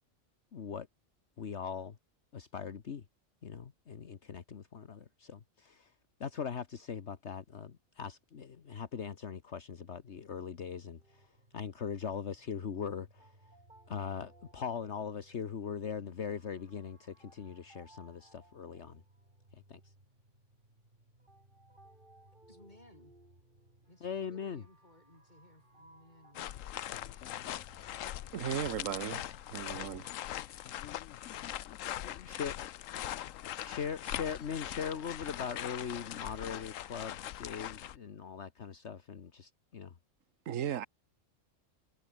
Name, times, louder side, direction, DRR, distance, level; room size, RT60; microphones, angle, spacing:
voice 1, 0.5-0.9 1.4-2.0 2.3-3.0 3.4-5.9 6.2-11.3 11.5-13.3 13.9-19.0 19.5-19.8 24.0-24.6 32.0-32.5 33.6-39.9, left 7 dB, 60° left, 1.5 m, -40 dB
sound 1, 11.0-30.0, right 1 dB, 40° right, 5.1 m, -62 dB
voice 2, 22.5-23.2 23.9-26.5, left 1 dB, 35° left, 4.2 m, -60 dB
sound 2, 26.3-38.0, left 12 dB, 80° left, 1.1 m, -41 dB
voice 3, 28.3-29.2 29.5-30.1 40.5-40.9, right 10 dB, 80° right, 1.3 m, -36 dB
omnidirectional pair, 1.3 m